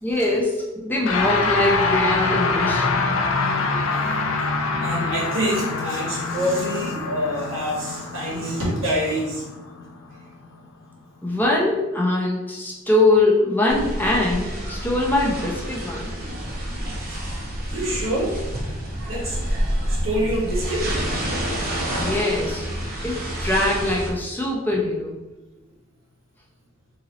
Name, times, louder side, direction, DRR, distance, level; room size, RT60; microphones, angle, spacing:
voice 1, 0.0-3.1 11.2-16.2 22.0-22.7 23.0-25.2, left 2 dB, 10° left, -4 dB, 0.5 m, -22 dB
sound 1, 1.0-10.5, left 4 dB, 85° left, 0.4 m, -25 dB
voice 2, 4.8-9.4 17.6-18.3 19.1-20.9, equal, 70° right, -5 dB, 1.4 m, -26 dB
sound 2, 13.7-24.1, equal, 50° right, 0.8 m, -28 dB
3.8 x 3.0 x 2.9 m, 1.1 s
head